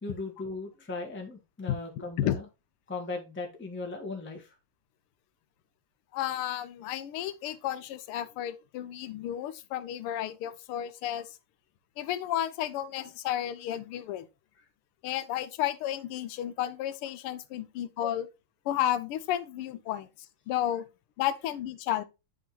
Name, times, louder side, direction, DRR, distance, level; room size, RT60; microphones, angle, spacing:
voice 1, 0.0-2.4 2.9-4.5, left 3 dB, 10° left, 0.7 m, -38 dB
voice 2, 6.1-11.4 12.0-14.3 15.0-18.3 18.6-20.1 20.5-20.9 21.2-22.0, left 12 dB, 85° left, 1.5 m, -32 dB
10.5 x 3.6 x 2.9 m
omnidirectional pair, 2.4 m